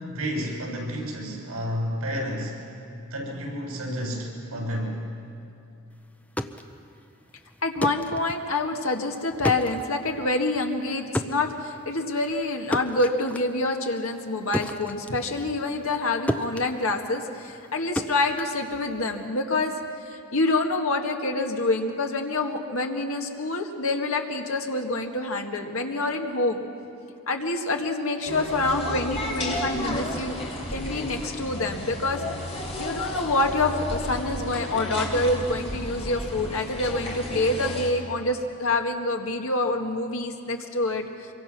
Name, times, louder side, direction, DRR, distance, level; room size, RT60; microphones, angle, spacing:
voice 1, 0.0-2.6 3.1-5.1, equal, 75° right, -1 dB, 6.6 m, -31 dB
sound 1, 6.1-16.0 16.3-19.2, equal, 5° left, 0.6 m, -34 dB
voice 2, 7.6-19.7 20.1-26.6 27.3-30.4 30.7-41.3, left 2 dB, 65° left, 3 dB, 1.9 m, -27 dB
sound 2, 28.3-37.9, left 1 dB, 25° left, 3.2 m, -33 dB
25.5 x 23.0 x 6.1 m, 2.7 s
head